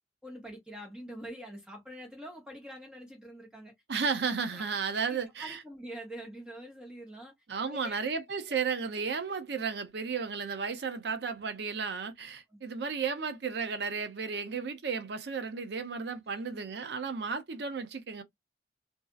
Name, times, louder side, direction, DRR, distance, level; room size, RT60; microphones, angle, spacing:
voice 1, 0.2-3.7 4.5-4.6 4.9-7.3 7.6-8.0 8.5-8.6 12.5-12.6 16.3-16.4, equal, 5° right, 0.7 m, -45 dB
voice 2, 3.9-5.6 7.5-18.2, right 5 dB, 65° right, 0.5 m, -33 dB
2.6 x 2.4 x 2.3 m
head